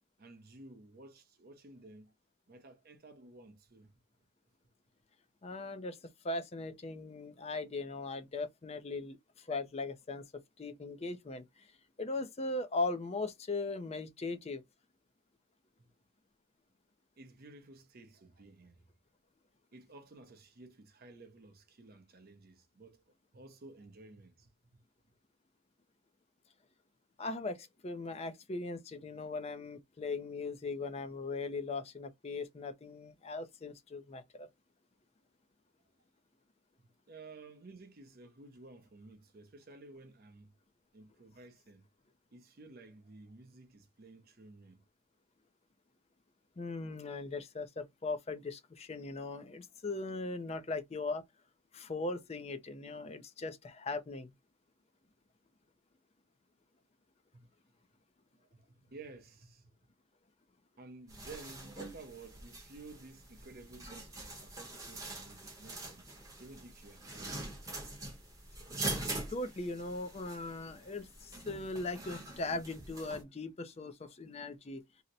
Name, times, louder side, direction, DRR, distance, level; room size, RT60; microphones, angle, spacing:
voice 1, 0.2-2.1 2.5-3.9 15.8-15.9 17.2-18.9 19.7-23.0 23.3-24.7 36.8-40.5 40.9-41.8 42.3-44.8 57.3-57.5 58.5-59.7 60.8-66.0 66.4-67.5, right 3 dB, 45° right, 0.6 m, -54 dB
voice 2, 5.4-10.2 10.6-11.7 12.0-14.6 27.2-34.5 46.6-51.2 51.7-54.3 68.9-74.8, left 3 dB, 30° left, 0.4 m, -39 dB
sound 1, 61.1-73.2, right 2 dB, 15° right, 0.8 m, -44 dB
2.8 x 2.1 x 3.8 m
head